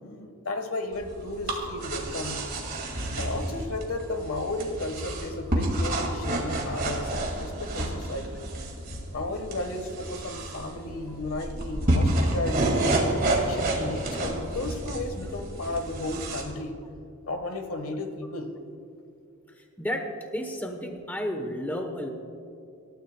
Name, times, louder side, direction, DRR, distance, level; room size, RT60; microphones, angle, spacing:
voice 1, 0.0-2.4 3.2-8.4 9.1-12.8 13.3-16.8 17.3-18.5, left 2 dB, 75° left, 6 dB, 1.3 m, -34 dB
sound 1, 0.9-16.4, right 1 dB, 40° right, 2.1 m, -30 dB
voice 2, 19.6-22.1, equal, 10° left, 4 dB, 0.9 m, -32 dB
26.0 x 13.0 x 2.2 m, 2.7 s
head